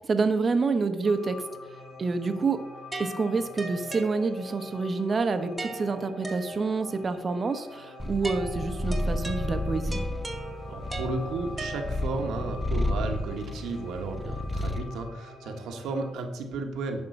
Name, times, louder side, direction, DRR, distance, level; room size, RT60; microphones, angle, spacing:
voice 1, 0.0-1.4 2.0-2.6 3.0-10.0, right 4 dB, 40° right, 9 dB, 0.9 m, -27 dB
sound 1, 1.0-16.1, left 3 dB, 70° left, 2.4 m, -46 dB
sound 2, 2.9-4.7 5.6-7.0 8.2-12.3, right 1 dB, 20° right, 1.2 m, -39 dB
Purr, 8.0-14.9, left 1 dB, 5° left, 0.6 m, -32 dB
voice 2, 10.7-17.0, right 3 dB, 80° right, 4 dB, 1.3 m, -33 dB
10.5 x 3.7 x 6.4 m, 1.1 s
cardioid pair, 90°, 0 cm